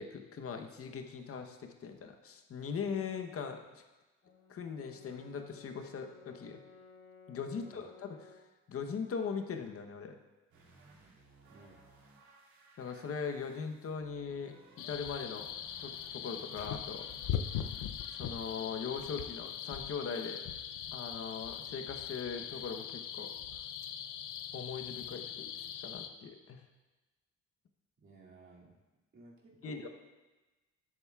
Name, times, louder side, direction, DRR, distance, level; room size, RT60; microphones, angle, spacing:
voice 1, 0.0-3.8 4.5-6.6 7.3-8.2 8.7-10.2 12.8-15.5 15.8-17.1 18.1-20.4 20.9-23.3 24.5-26.6 29.6-29.9, left 6 dB, 50° left, 5 dB, 1.0 m, -40 dB
Brass instrument, 4.2-8.5, left 3 dB, 70° left, 2.7 m, -57 dB
voice 2, 7.5-7.9 11.4-11.9 28.0-28.8 29.1-29.9, right 3 dB, 45° right, -4 dB, 2.5 m, -56 dB
sound 1, 10.5-18.8, right 3 dB, 75° right, 2.6 m, -61 dB
sound 2, 14.8-26.1, left 9 dB, 90° left, 0.6 m, -41 dB
13.0 x 7.8 x 2.4 m, 1.1 s
cardioid pair, 90°, 30 cm